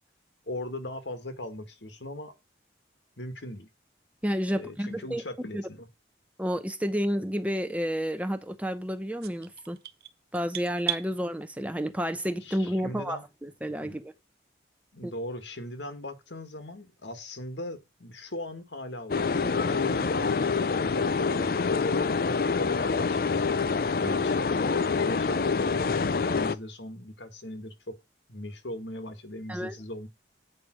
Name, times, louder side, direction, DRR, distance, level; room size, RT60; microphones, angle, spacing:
voice 1, 0.5-2.3 3.2-3.7 4.5-5.9 12.4-13.2 13.8-14.0 14.9-23.5 24.0-28.0 28.3-30.1, left 1 dB, 80° left, 1.7 m, -39 dB
voice 2, 4.2-5.2 5.5-5.6 6.4-9.8 10.3-14.1 15.0-15.1 24.1-24.2 29.5-29.7, equal, 10° right, 0.6 m, -30 dB
sound 1, 9.2-11.1, right 12 dB, 55° right, 0.6 m, -35 dB
sound 2, 19.1-26.5, left 4 dB, 50° left, 0.5 m, -26 dB
8.6 x 5.0 x 6.1 m
head